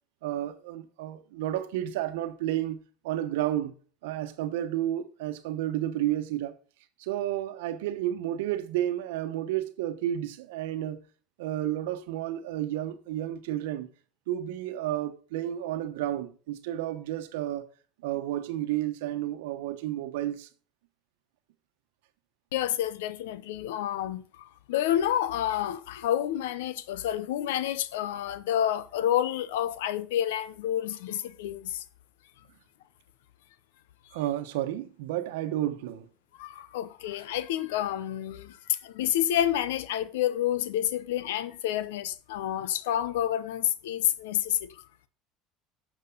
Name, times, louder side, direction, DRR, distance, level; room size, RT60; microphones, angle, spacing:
voice 1, 0.2-3.7 4.0-6.6 7.0-11.0 11.4-13.9 14.3-17.7 18.0-20.5 34.1-36.1, right 13 dB, 80° right, 1.1 m, -31 dB
voice 2, 22.5-31.8 36.4-44.7, left 11 dB, 80° left, 0.8 m, -29 dB
12.0 x 7.3 x 3.9 m
hypercardioid pair, 75°, 0 cm